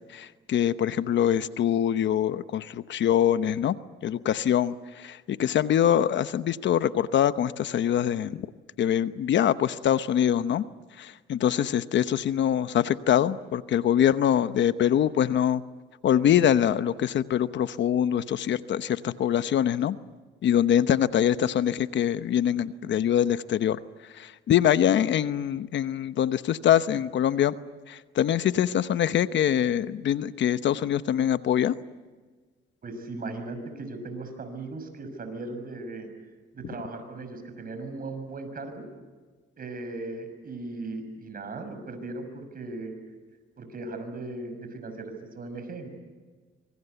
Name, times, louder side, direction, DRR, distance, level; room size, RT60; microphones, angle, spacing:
voice 1, 0.1-3.8 4.0-8.5 8.8-10.6 11.0-15.6 16.0-20.0 20.4-23.8 24.1-27.5 27.9-31.7, left 10 dB, 65° left, 13 dB, 1.0 m, -24 dB
voice 2, 32.8-36.1 36.5-38.9 39.6-43.0 43.6-45.9, right 2 dB, 45° right, 7 dB, 6.3 m, -37 dB
25.5 x 24.0 x 8.1 m, 1.4 s
cardioid pair, 90°, 20 cm